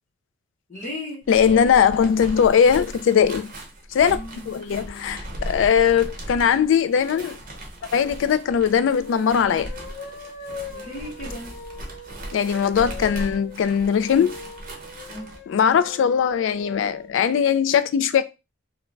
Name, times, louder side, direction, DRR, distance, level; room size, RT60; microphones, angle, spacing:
voice 1, 0.7-1.3 4.0-4.5 10.7-11.5 15.1-15.4, left 1 dB, 45° left, 0.8 m, -36 dB
sound 1, 1.2-15.4, right 1 dB, 45° right, 0.7 m, -38 dB
voice 2, 1.3-3.5 3.9-4.2 4.5-7.4 7.9-9.7 12.3-14.4 15.5-18.2, left 7 dB, 80° left, 0.3 m, -20 dB
sound 2, 9.0-17.1, left 3 dB, 65° left, 1.0 m, -41 dB
2.5 x 2.1 x 3.1 m
head